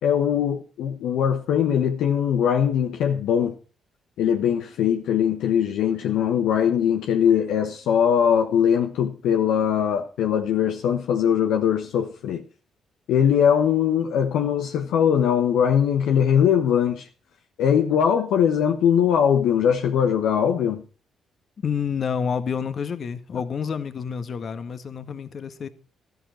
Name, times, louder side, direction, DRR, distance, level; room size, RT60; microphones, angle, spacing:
voice 1, 0.0-3.5 4.2-12.4 13.1-17.1 17.6-20.8, left 8 dB, 70° left, 1.3 m, -21 dB
voice 2, 21.6-25.7, left 6 dB, 50° left, 1.7 m, -28 dB
14.0 x 12.5 x 4.4 m
hypercardioid pair, 45°, 0 cm